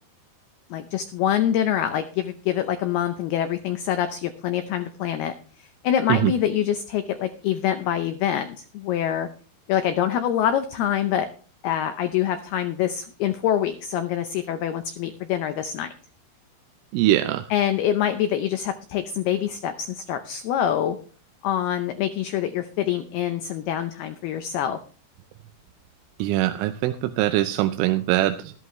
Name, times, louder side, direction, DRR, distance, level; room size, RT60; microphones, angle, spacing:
voice 1, 0.7-9.3 9.7-11.3 11.6-15.9 17.5-21.0 21.4-24.8, left 10 dB, 90° left, 9 dB, 2.2 m, -25 dB
voice 2, 16.9-17.5 26.2-28.5, right 15 dB, 90° right, 8 dB, 3.2 m, -22 dB
14.0 x 13.5 x 3.1 m, 0.40 s
omnidirectional pair, 5.6 m